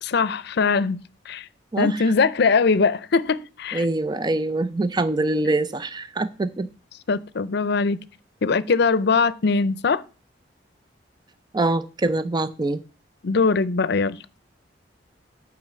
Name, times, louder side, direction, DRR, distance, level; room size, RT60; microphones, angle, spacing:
voice 1, 0.0-1.0 1.3-1.5 1.8-3.9 7.1-8.0 8.4-10.0 13.2-14.2, left 4 dB, 65° left, 0.5 m, -21 dB
voice 2, 3.7-6.7 11.5-12.8, right 2 dB, 25° right, 0.4 m, -24 dB
9.0 x 5.0 x 7.3 m
head